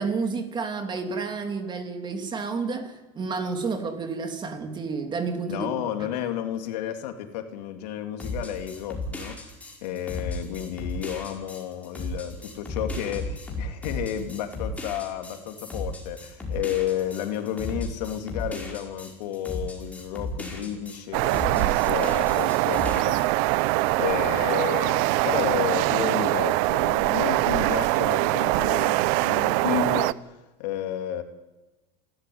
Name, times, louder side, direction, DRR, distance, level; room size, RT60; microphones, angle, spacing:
voice 1, 0.0-6.1, right 4 dB, 20° right, 2.8 m, -30 dB
voice 2, 5.5-9.4 9.8-30.3 30.6-31.2, left 11 dB, 80° left, 3.2 m, -32 dB
sound 1, 8.2-21.0 21.3-23.2, left 2 dB, 5° left, 5.0 m, -35 dB
sound 2, 21.1-30.1, right 19 dB, 60° right, 0.7 m, -23 dB
28.0 x 13.5 x 9.7 m
supercardioid pair, 150°, 21 cm